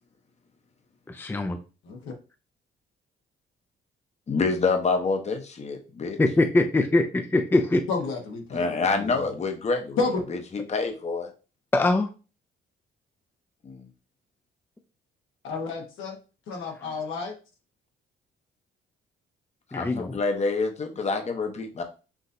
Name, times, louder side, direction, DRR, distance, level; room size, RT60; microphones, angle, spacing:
voice 1, 1.1-1.6 6.2-7.8 11.7-12.1 19.7-20.1, left 2 dB, 10° left, 0.4 m, -22 dB
voice 2, 4.3-6.2 8.5-10.0 10.3-11.3 13.6-13.9 19.7-21.8, left 4 dB, 35° left, 0.8 m, -27 dB
voice 3, 7.9-9.2 10.0-10.2 15.4-16.2 16.5-17.3, left 4 dB, 80° left, 1.2 m, -31 dB
5.9 x 2.6 x 2.6 m
cardioid pair, 90°, 20 cm